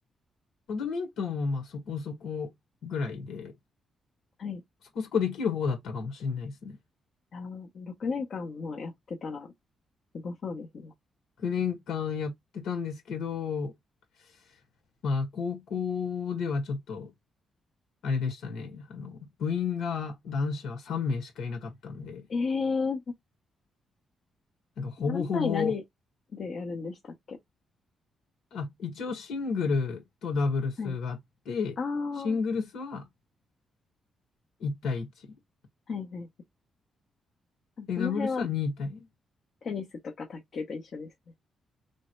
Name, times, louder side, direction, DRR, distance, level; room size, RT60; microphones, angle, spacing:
voice 1, 0.7-2.5 2.8-3.5 5.0-6.8 11.4-13.7 15.0-17.1 18.0-22.3 24.8-25.7 28.5-31.2 31.5-31.8 32.2-33.0 34.6-35.3 37.9-39.1, left 5 dB, 80° left, 1.6 m, -31 dB
voice 2, 7.3-9.5 10.1-10.9 22.3-23.0 25.1-25.8 26.3-27.4 30.8-31.0 31.8-32.4 35.9-36.3 37.8-38.5 39.6-41.1, left 4 dB, 45° left, 0.9 m, -33 dB
3.6 x 3.2 x 3.1 m
cardioid pair, 160°, 0 cm